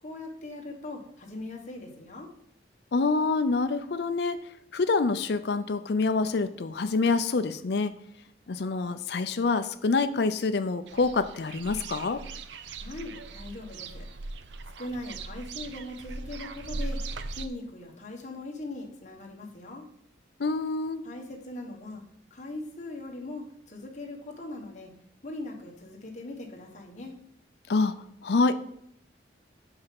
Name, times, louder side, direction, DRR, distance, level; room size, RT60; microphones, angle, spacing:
voice 1, 0.0-2.3 12.8-14.1 14.8-17.0 17.3-19.9 21.0-22.0 22.3-24.9 25.2-27.1, left 2 dB, 40° left, 0 dB, 1.4 m, -40 dB
voice 2, 2.9-4.4 4.7-7.9 8.5-12.2 20.4-21.0 27.7-27.9 28.2-28.5, left 3 dB, 65° left, 10 dB, 0.5 m, -26 dB
sound 1, 10.9-17.5, right 3 dB, 80° right, 0.5 m, -39 dB
5.9 x 5.5 x 5.9 m, 0.70 s
head